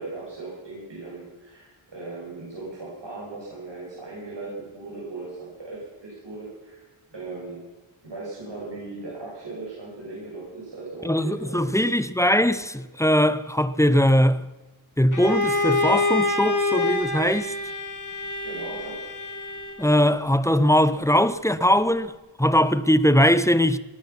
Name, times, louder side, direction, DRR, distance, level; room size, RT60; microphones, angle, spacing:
voice 1, 0.0-6.8 7.1-7.6 8.0-11.9 18.4-19.0, right 3 dB, 60° right, 6.9 m, -38 dB
voice 2, 11.0-14.5 15.0-17.5 19.8-22.1 22.4-23.8, equal, 5° left, 0.8 m, -20 dB
Bowed string instrument, 15.1-19.9, left 2 dB, 40° left, 2.3 m, -26 dB
20.5 x 11.5 x 6.0 m
wide cardioid pair, 55°, 49 cm